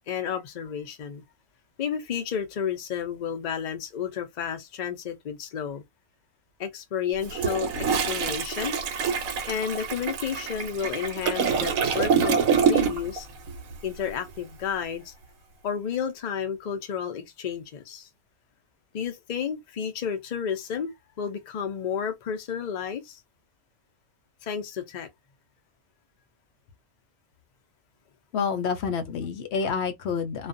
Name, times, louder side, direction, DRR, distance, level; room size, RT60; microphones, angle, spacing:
voice 1, 0.1-1.2 1.8-5.8 6.6-8.8 9.5-13.3 13.8-15.1 15.6-18.1 18.9-23.2 24.4-25.1, left 8 dB, 85° left, 0.4 m, -31 dB
Toilet flush, 7.2-13.2 13.5-13.7, right 6 dB, 75° right, 1.0 m, -26 dB
voice 2, 28.3-30.5, left 6 dB, 65° left, 0.7 m, -28 dB
2.4 x 2.2 x 2.5 m
omnidirectional pair, 1.5 m